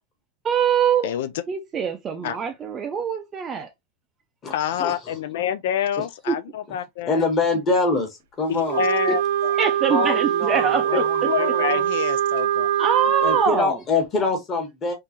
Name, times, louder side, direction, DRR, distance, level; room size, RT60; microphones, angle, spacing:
voice 1, 0.4-1.1 1.5-3.7 6.3-6.4 9.1-9.2 9.6-11.0 12.8-13.8, right 7 dB, 15° right, 0.5 m, -23 dB
voice 2, 4.5-7.2 8.5-9.5 10.9-12.7, left 9 dB, 65° left, 0.4 m, -27 dB
voice 3, 7.1-8.1 8.4-8.8 9.9-11.8 13.2-14.9, left 3 dB, 20° left, 1.3 m, -24 dB
Wind instrument woodwind instrument, 8.7-13.5, right 10 dB, 75° right, 0.6 m, -23 dB
3.7 x 3.0 x 2.8 m
supercardioid pair, 175°, 0 cm